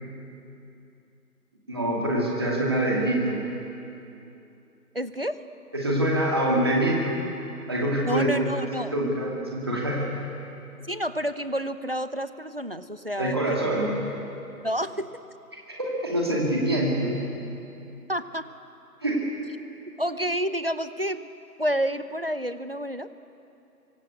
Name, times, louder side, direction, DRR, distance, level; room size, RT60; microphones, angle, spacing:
voice 1, 1.7-3.4 5.7-7.2 7.7-8.5 8.8-10.1 13.2-13.9 15.5-17.2 19.0-19.3, right 1 dB, 15° right, -3 dB, 2.4 m, -25 dB
voice 2, 4.9-5.4 8.1-8.9 10.9-13.6 14.6-15.1 18.1-18.5 20.0-21.3 21.6-23.1, equal, 40° right, 12 dB, 0.8 m, -29 dB
25.0 x 24.5 x 8.2 m, 2.8 s
figure-of-eight pair, 175°, 47 cm